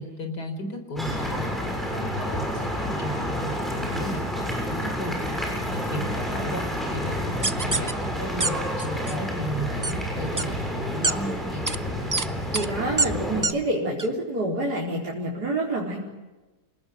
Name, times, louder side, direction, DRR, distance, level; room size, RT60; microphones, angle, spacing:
voice 1, 0.0-5.2 5.7-11.7, equal, 80° left, 7 dB, 4.9 m, -34 dB
sound 1, 1.0-13.4, equal, ahead, 7.1 m, -29 dB
sound 2, 7.4-7.9 8.4-8.5 8.8-9.1 9.8-9.9 10.4-10.5 11.0-11.1 11.7-11.8 12.1-12.3 12.5-12.7 13.0-13.1 13.4-13.5 14.0-14.1, right 3 dB, 20° right, 0.4 m, -24 dB
voice 2, 12.5-16.0, right 1 dB, 75° right, -4 dB, 5.1 m, -27 dB
28.0 x 19.0 x 9.5 m, 1.1 s
omnidirectional pair, 1.7 m